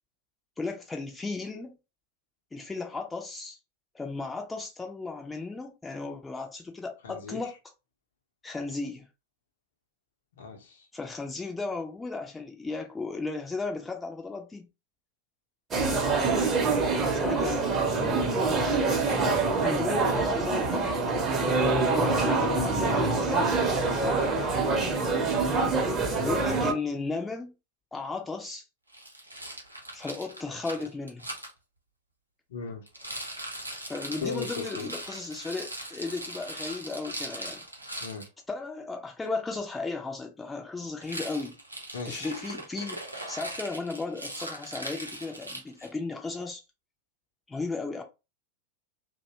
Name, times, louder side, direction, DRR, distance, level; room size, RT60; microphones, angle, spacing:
voice 1, 0.6-1.8 2.5-3.6 3.9-7.5 8.4-9.1 10.9-14.7 17.1-18.4 19.6-21.0 21.8-23.6 23.9-24.4 26.1-27.5 27.9-28.6 29.9-31.3 33.9-37.6 38.5-41.6 42.1-46.6 47.5-48.0, left 3 dB, 10° left, 0.5 m, -35 dB
voice 2, 7.0-7.4 10.3-10.9 19.0-19.7 20.0-20.2 22.4-23.0 24.0-24.3 32.5-32.9 34.2-34.9 38.0-38.3 41.9-42.3, left 5 dB, 60° left, 0.7 m, -38 dB
sound 1, 15.7-26.7, right 3 dB, 25° right, 0.7 m, -25 dB
Rattle, 28.9-31.5 32.9-38.3 41.0-46.0, right 1 dB, 85° right, 0.6 m, -40 dB
2.6 x 2.2 x 2.7 m
figure-of-eight pair, 90°, 0 cm